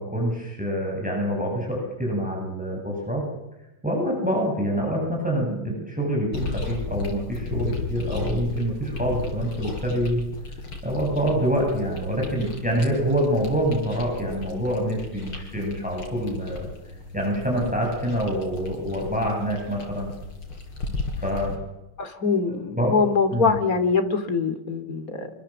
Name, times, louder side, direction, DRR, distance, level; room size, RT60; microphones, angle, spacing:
voice 1, 0.0-3.2 3.8-10.2 10.8-16.7 17.1-20.1 20.9-21.6 22.5-22.9 23.3-23.6, equal, 5° right, -1 dB, 7.9 m, -26 dB
sound 1, 6.3-21.6, left 3 dB, 85° left, 5.4 m, -35 dB
voice 2, 22.0-25.3, left 5 dB, 40° left, 8 dB, 3.1 m, -23 dB
26.5 x 23.5 x 7.6 m, 0.93 s
omnidirectional pair, 2.3 m